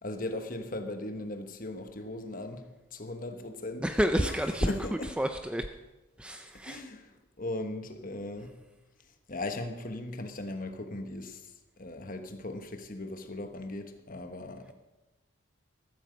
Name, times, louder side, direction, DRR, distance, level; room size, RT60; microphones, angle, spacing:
voice 1, 0.0-3.9 4.2-4.3 4.6-5.1 6.6-7.1 7.4-8.5 9.3-11.4 11.8-14.7, left 2 dB, 40° left, 1.3 m, -38 dB
voice 2, 3.8-5.7 6.2-6.8, equal, 5° right, 0.5 m, -30 dB
14.5 x 14.5 x 5.2 m
head